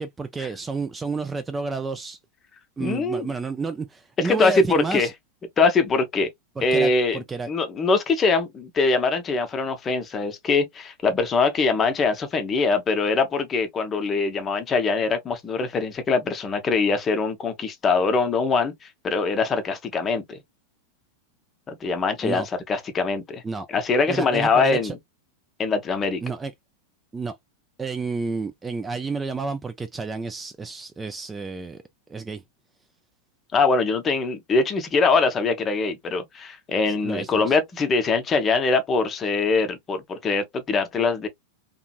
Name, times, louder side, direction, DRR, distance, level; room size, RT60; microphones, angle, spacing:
voice 1, 0.0-2.2 2.8-5.1 6.6-7.5 22.2-22.5 23.4-23.7 24.1-24.9 26.2-26.5 27.1-27.4 27.8-31.8 32.1-32.4 36.9-37.6, right 4 dB, 15° right, 0.3 m, -30 dB
voice 2, 2.8-3.3 4.2-5.1 5.6-6.3 6.6-18.7 19.0-20.4 21.7-23.4 23.7-24.9 25.6-26.2 33.5-41.3, left 4 dB, 25° left, 0.6 m, -23 dB
2.8 x 2.5 x 2.3 m
figure-of-eight pair, 90°, 0 cm